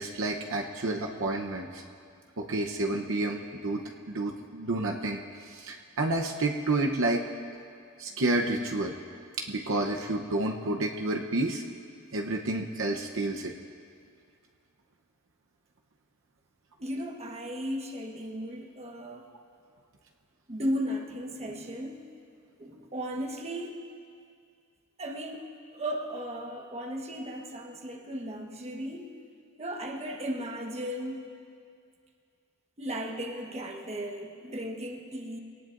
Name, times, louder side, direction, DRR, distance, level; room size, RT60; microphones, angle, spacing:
voice 1, 0.0-1.8 2.4-3.8 4.1-7.2 8.0-8.9 9.4-11.6 12.1-13.5, right 2 dB, 65° right, 1 dB, 0.9 m, -30 dB
voice 2, 16.8-19.3 20.5-22.1 22.6-23.8 25.0-29.1 29.6-31.3 32.8-35.4, equal, 30° right, 1 dB, 1.3 m, -36 dB
23.5 x 18.0 x 2.6 m, 2.3 s
head